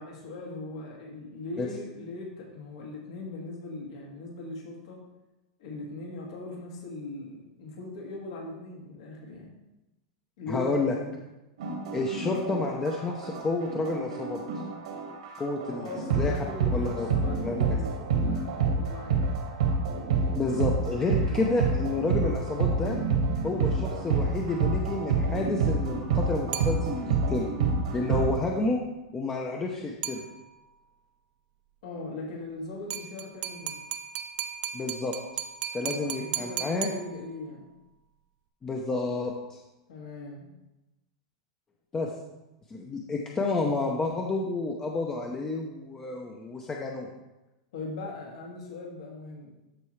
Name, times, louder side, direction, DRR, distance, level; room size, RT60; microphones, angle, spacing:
voice 1, 0.0-5.0 5.6-9.5 10.4-10.7 11.0-11.1 15.6-19.2 21.3-21.5 31.8-33.8 35.8-37.7 39.9-40.5 47.7-49.5, left 2 dB, 70° left, -2 dB, 2.2 m, -40 dB
voice 2, 10.5-10.9 11.9-14.4 15.4-16.3 16.7-17.1 17.4-17.6 20.3-23.0 23.4-27.5 27.9-28.8 29.1-30.2 34.7-35.1 35.7-36.9 38.6-39.6 41.9-42.1 42.7-47.1, left 3 dB, 20° left, 0 dB, 0.7 m, -30 dB
sound 1, 11.6-28.4, right 4 dB, 80° right, 1.9 m, -28 dB
sound 2, 26.5-27.3 30.0-30.8 32.9-37.6, right 10 dB, 40° right, 0.6 m, -37 dB
13.0 x 4.5 x 3.2 m, 0.99 s
supercardioid pair, 140°, 3 cm